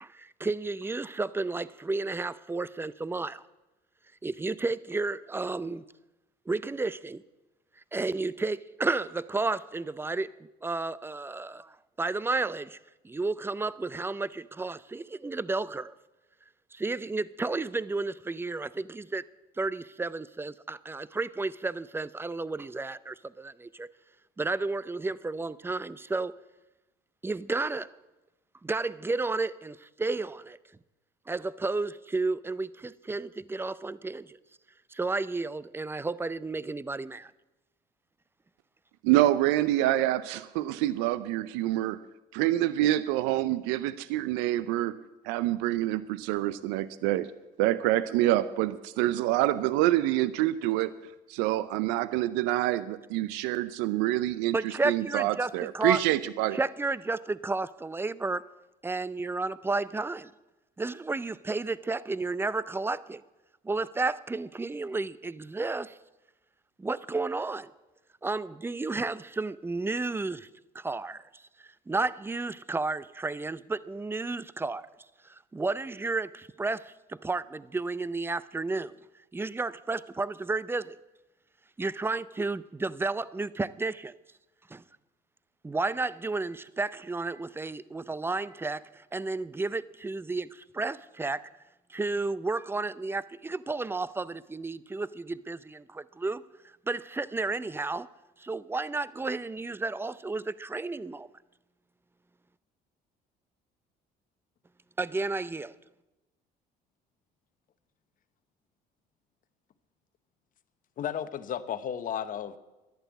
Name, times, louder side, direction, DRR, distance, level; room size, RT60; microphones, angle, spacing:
voice 1, 0.0-3.4 4.2-5.8 6.5-7.2 7.9-12.8 13.0-15.9 16.7-19.2 19.6-23.9 24.4-26.4 27.2-28.0 28.6-30.6 31.3-34.4 34.9-37.3 54.5-56.0 56.5-58.5 58.8-60.3 60.8-63.2 63.6-66.0 66.8-67.7 68.2-70.5 70.7-74.9 75.2-79.0 79.3-81.0 81.8-84.2 84.7-84.8 85.6-91.5 91.9-96.4 96.9-98.1 98.4-101.3 105.0-105.8, right 3 dB, 15° right, 0.5 m, -32 dB
voice 2, 39.0-42.0 42.3-45.0 45.2-47.3 47.6-50.9 51.3-56.6, right 15 dB, 85° right, 0.5 m, -26 dB
voice 3, 111.0-112.6, left 9 dB, 50° left, 1.0 m, -33 dB
11.5 x 10.5 x 8.2 m
supercardioid pair, 85°, 18 cm